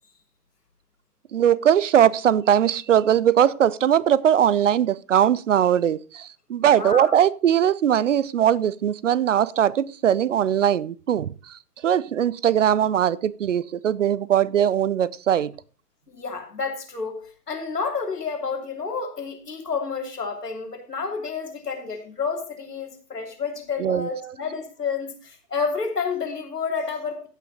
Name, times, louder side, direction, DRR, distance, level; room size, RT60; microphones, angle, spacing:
voice 1, 1.3-11.3 11.8-15.5 23.8-24.1, right 9 dB, 50° right, 0.5 m, -20 dB
voice 2, 6.6-7.2 16.1-27.3, left 5 dB, 75° left, 2.8 m, -30 dB
15.5 x 5.8 x 3.9 m
figure-of-eight pair, 125°, 48 cm